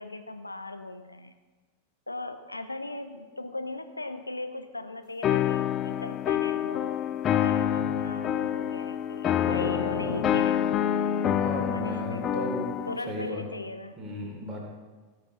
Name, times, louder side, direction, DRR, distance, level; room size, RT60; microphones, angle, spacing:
voice 1, 0.0-1.3 2.1-7.0 7.3-10.6 11.5-12.5 12.9-14.0, left 2 dB, 85° left, 8 dB, 0.8 m, -38 dB
piano loop in c-minor, 5.2-13.0, left 10 dB, 30° left, 0.5 m, -27 dB
voice 2, 9.5-10.3 11.3-12.8 13.1-13.4 14.0-14.7, equal, 20° right, -2 dB, 3.8 m, -36 dB
17.5 x 6.7 x 5.5 m, 1.4 s
figure-of-eight pair, 90°, 0 cm